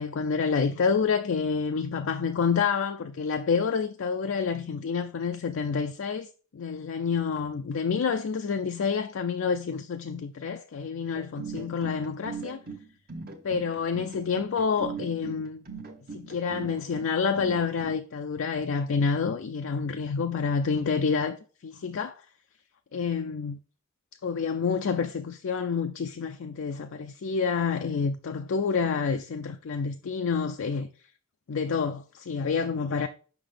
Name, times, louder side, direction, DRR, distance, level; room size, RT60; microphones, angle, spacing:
voice 1, 0.0-6.3 6.5-12.6 13.4-15.6 16.1-22.2 22.9-23.6 24.2-30.9 31.5-33.1, left 5 dB, 65° left, 0.4 m, -28 dB
sound 1, 11.1-18.0, right 4 dB, 45° right, 1.0 m, -40 dB
5.9 x 5.6 x 3.3 m
head